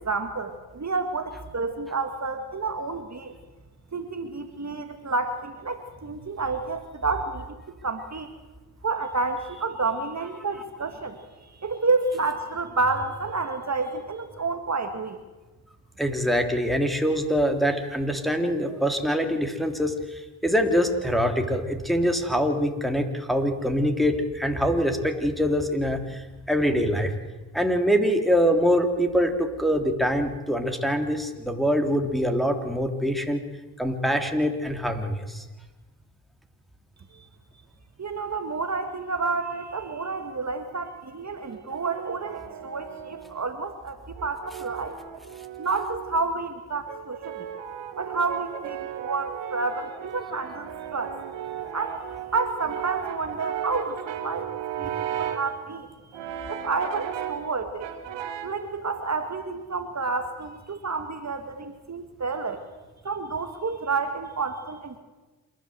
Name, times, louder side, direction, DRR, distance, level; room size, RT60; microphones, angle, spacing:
voice 1, 0.0-3.3 3.9-7.6 7.8-8.3 8.8-15.2 37.1-37.3 38.0-45.0 45.6-47.5 48.0-51.2 51.7-52.0 52.3-54.5 54.8-55.9 56.5-57.9 58.4-62.7 63.0-65.0, right 3 dB, 40° right, 7 dB, 2.1 m, -30 dB
voice 2, 16.0-26.2 26.5-27.1 27.5-33.4 33.8-35.4, equal, ahead, 4 dB, 3.4 m, -24 dB
Brass instrument, 41.5-43.4 44.2-46.2 46.9-55.5 56.1-57.5 57.8-58.6, right 10 dB, 85° right, 2.0 m, -35 dB
27.5 x 12.0 x 8.0 m, 1.2 s
supercardioid pair, 50°, 42 cm